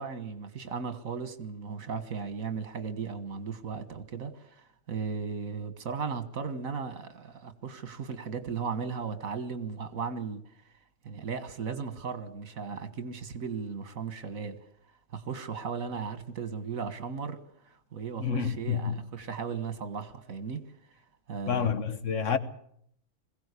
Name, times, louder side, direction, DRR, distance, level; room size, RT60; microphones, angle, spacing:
voice 1, 0.0-10.4 11.0-14.6 15.1-20.6 21.3-21.7, right 5 dB, 80° right, 1.9 m, -36 dB
voice 2, 18.2-19.0 21.5-22.4, left 6 dB, 65° left, 1.7 m, -29 dB
22.0 x 16.5 x 8.3 m
omnidirectional pair, 1.4 m